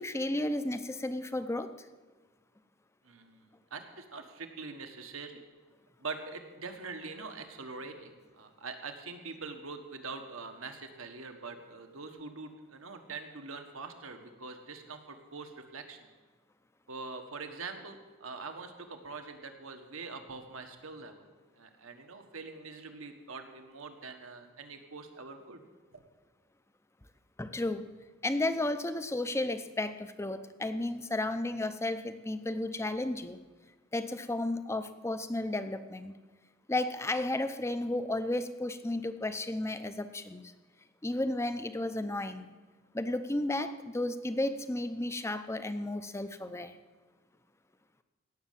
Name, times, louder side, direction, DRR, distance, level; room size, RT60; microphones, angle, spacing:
voice 1, 0.0-1.9 27.4-27.9 28.2-33.4 33.9-36.1 36.7-40.5 41.0-42.5 42.9-46.8, left 2 dB, 15° left, 10 dB, 0.6 m, -33 dB
voice 2, 3.0-5.4 6.0-16.1 16.9-21.2 21.6-25.6 25.9-26.0, right 4 dB, 75° right, 5 dB, 1.4 m, -44 dB
17.0 x 6.6 x 7.5 m, 1.3 s
head